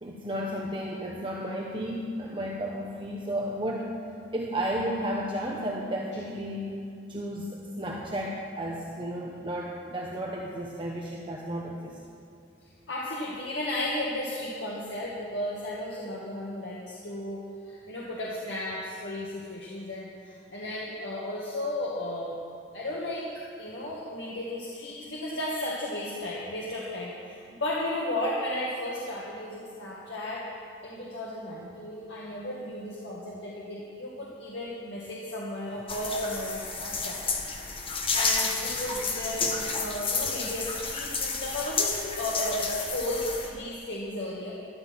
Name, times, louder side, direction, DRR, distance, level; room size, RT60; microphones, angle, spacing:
voice 1, 0.0-3.9 4.3-6.7 7.1-12.0, equal, 30° right, -3 dB, 1.1 m, -33 dB
voice 2, 12.9-17.4 17.7-22.4 22.7-30.5 30.8-37.2 38.1-44.5, left 1 dB, 75° left, -5 dB, 1.8 m, -34 dB
sound 1, 35.9-43.5, left 4 dB, 30° left, 1.4 m, -31 dB
13.0 x 11.5 x 6.1 m, 2.5 s
head